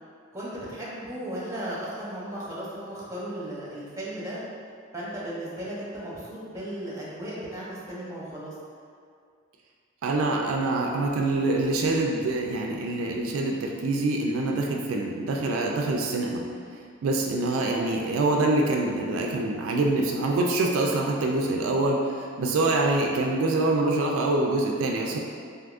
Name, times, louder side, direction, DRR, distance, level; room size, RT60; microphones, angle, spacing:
voice 1, 0.3-4.4 4.9-8.5, right 1 dB, 15° right, -7 dB, 0.7 m, -35 dB
voice 2, 10.0-16.5 17.0-25.2, right 2 dB, 80° right, 0 dB, 0.3 m, -25 dB
3.5 x 2.7 x 2.4 m, 2.2 s
head